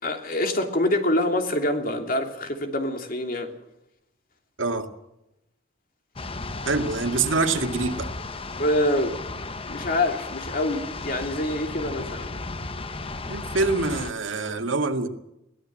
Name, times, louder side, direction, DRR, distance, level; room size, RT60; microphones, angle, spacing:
voice 1, 0.0-3.5 8.6-9.2 9.4-12.3, left 1 dB, 45° left, 3.0 m, -26 dB
sound 1, 6.2-14.1, left 3 dB, 30° left, 1.0 m, -35 dB
voice 2, 6.7-8.1 13.3-15.1, right 3 dB, 85° right, 2.2 m, -25 dB
23.0 x 17.5 x 7.6 m
head